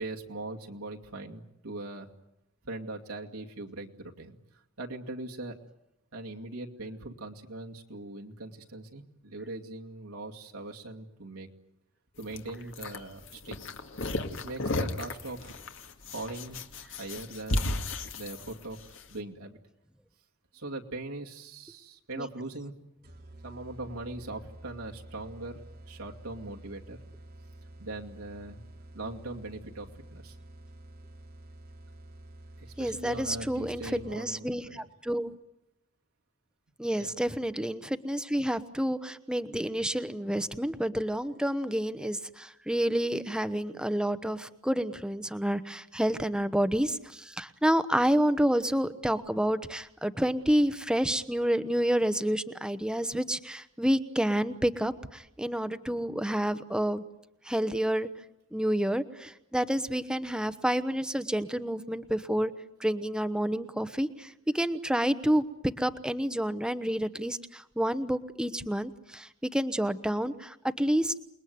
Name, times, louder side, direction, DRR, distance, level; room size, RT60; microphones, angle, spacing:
voice 1, 0.0-2.1 2.6-4.4 4.8-5.6 6.1-11.5 12.2-13.6 14.3-15.6 16.0-17.9 18.1-19.6 20.5-22.7 23.4-25.5 25.9-27.0 27.8-28.6 28.9-30.4 32.6-34.8 36.9-37.1, right 2 dB, 80° right, 1 dB, 2.4 m, -40 dB
sound 1, 12.2-19.0, left 2 dB, 60° left, 2.1 m, -34 dB
sound 2, 23.0-34.4, right 1 dB, 45° right, 1.8 m, -49 dB
voice 2, 32.8-35.3 36.8-57.0 57.5-58.1 58.5-62.5 62.8-65.4 65.8-71.1, equal, 5° right, 11 dB, 1.0 m, -29 dB
28.5 x 21.0 x 9.4 m, 0.86 s
head